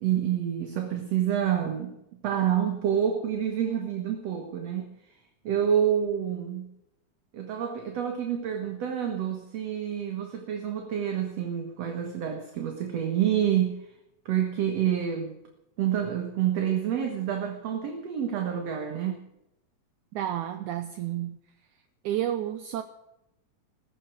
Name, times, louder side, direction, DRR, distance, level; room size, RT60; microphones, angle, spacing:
voice 1, 0.0-2.0 2.2-4.9 5.4-6.7 7.3-13.8 14.3-15.4 15.8-19.2, right 9 dB, 55° right, 5 dB, 2.2 m, -28 dB
voice 2, 20.1-21.4 22.0-22.8, right 12 dB, 75° right, 10 dB, 2.0 m, -30 dB
15.0 x 15.0 x 6.2 m, 0.86 s
omnidirectional pair, 4.0 m